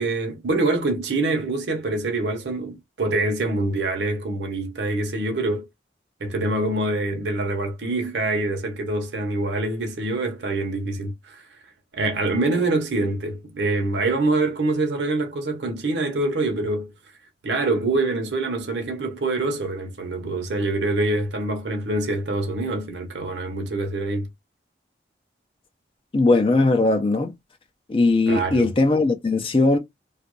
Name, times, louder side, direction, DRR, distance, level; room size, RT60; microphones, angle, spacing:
voice 1, 0.0-5.7 6.2-11.4 11.9-16.9 17.4-24.3 28.3-28.7, right 2 dB, 80° right, 0.7 m, -25 dB
voice 2, 26.1-27.3 27.9-29.8, left 2 dB, 30° left, 0.4 m, -19 dB
2.6 x 2.4 x 2.9 m
head